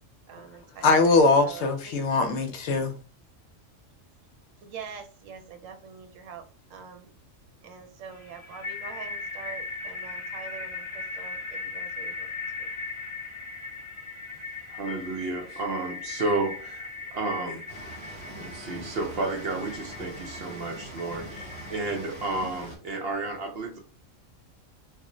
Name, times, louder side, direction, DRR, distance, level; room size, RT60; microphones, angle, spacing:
voice 1, 0.3-1.9 4.6-6.4 6.7-7.1 7.6-12.3 12.6-12.7, right 6 dB, 80° right, 1.0 m, -44 dB
voice 2, 0.8-3.0, left 3 dB, 70° left, 0.8 m, -21 dB
sound 1, 8.1-22.4, left 3 dB, 50° left, 0.3 m, -39 dB
voice 3, 14.7-17.6 18.4-23.8, right 2 dB, 60° right, 0.7 m, -32 dB
sound 2, 17.7-22.8, right 1 dB, 25° left, 1.0 m, -43 dB
2.4 x 2.1 x 3.7 m
omnidirectional pair, 1.3 m